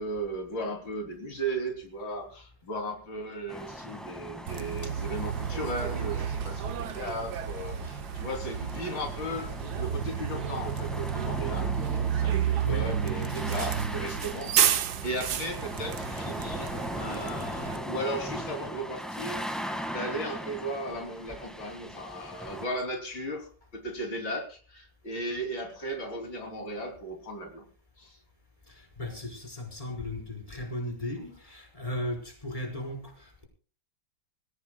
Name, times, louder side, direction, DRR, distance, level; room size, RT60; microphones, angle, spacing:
voice 1, 0.0-11.7 12.2-19.4 19.9-27.6 28.0-28.2, right 1 dB, 85° left, 4.0 m, -36 dB
sound 1, 3.5-22.7, equal, ahead, 1.6 m, -39 dB
Bus, 4.5-17.8, right 9 dB, 65° right, 1.4 m, -31 dB
voice 2, 28.7-33.4, left 1 dB, 15° left, 4.7 m, -36 dB
25.0 x 16.0 x 2.3 m
omnidirectional pair, 2.0 m